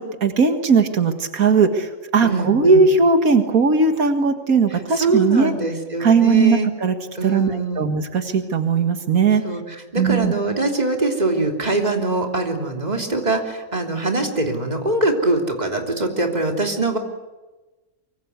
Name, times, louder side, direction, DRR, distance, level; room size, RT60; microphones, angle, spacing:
voice 1, 0.0-5.5 6.0-6.9 7.2-9.4 10.0-10.3, right 4 dB, 85° right, 7 dB, 2.2 m, -18 dB
voice 2, 2.2-2.8 4.9-6.7 7.2-7.9 9.4-17.0, right 2 dB, 30° right, 3 dB, 3.3 m, -23 dB
25.0 x 24.0 x 8.2 m, 1.2 s
omnidirectional pair, 1.5 m